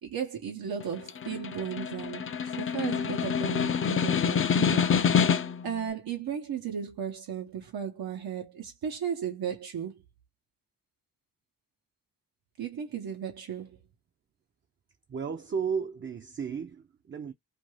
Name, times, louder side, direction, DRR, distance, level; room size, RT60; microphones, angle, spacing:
voice 1, 0.0-5.2 5.6-9.9 12.6-13.8, right 8 dB, 85° right, 0.8 m, -35 dB
Snare drum, 0.8-5.7, left 7 dB, 35° left, 0.4 m, -27 dB
voice 2, 15.1-17.3, right 6 dB, 35° right, 0.4 m, -34 dB
2.6 x 2.2 x 3.1 m
cardioid pair, 70°, 36 cm